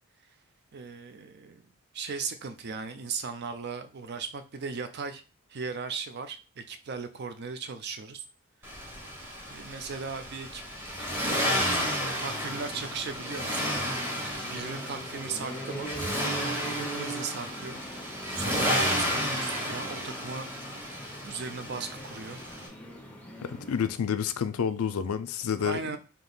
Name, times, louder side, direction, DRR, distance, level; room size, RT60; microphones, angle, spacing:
voice 1, 0.7-1.7 1.9-5.2 5.5-8.2 8.6-8.8 9.5-10.6 11.7-13.9 14.5-15.9 16.9-20.5 21.2-22.4 25.6-26.0, right 5 dB, 45° right, 0.4 m, -37 dB
Accelerating revving vroom, 8.6-22.7, equal, 10° right, 0.9 m, -32 dB
sound 1, 12.3-23.9, right 2 dB, 5° left, 0.6 m, -42 dB
voice 2, 23.4-25.8, left 7 dB, 75° left, 0.4 m, -29 dB
3.6 x 2.8 x 3.9 m
head